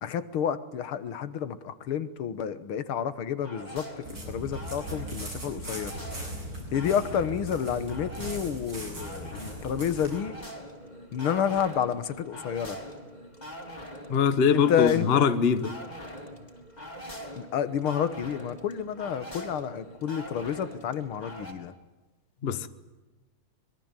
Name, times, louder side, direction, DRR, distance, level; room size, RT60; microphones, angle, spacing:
voice 1, 0.0-5.9 6.7-10.4 11.1-12.8 14.5-15.2 17.4-21.7, left 8 dB, 80° left, 2.2 m, -30 dB
sound 1, 3.4-21.5, equal, 20° left, 3.8 m, -44 dB
sound 2, 4.0-10.2, right 1 dB, 55° right, 8.8 m, -39 dB
voice 2, 14.1-15.7 22.4-22.7, left 6 dB, 35° left, 1.1 m, -23 dB
25.0 x 22.5 x 9.0 m
omnidirectional pair, 2.3 m